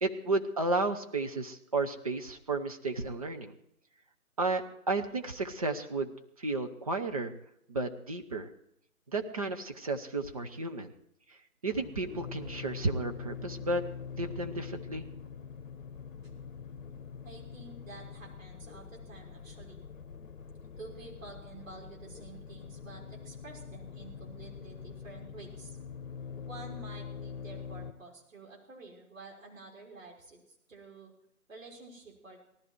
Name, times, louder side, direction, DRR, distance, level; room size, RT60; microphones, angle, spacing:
voice 1, 0.0-3.5 4.4-6.1 6.4-7.3 7.7-8.5 9.1-10.9 11.6-13.8 14.2-15.1, right 2 dB, 25° right, 4 dB, 0.8 m, -32 dB
sound 1, 11.7-27.9, left 6 dB, 60° left, 1.3 m, -44 dB
voice 2, 17.2-19.8 20.8-25.8 26.5-31.1 31.5-32.4, right 3 dB, 60° right, -1 dB, 6.2 m, -50 dB
18.5 x 14.0 x 4.6 m, 0.76 s
figure-of-eight pair, 150°, 44 cm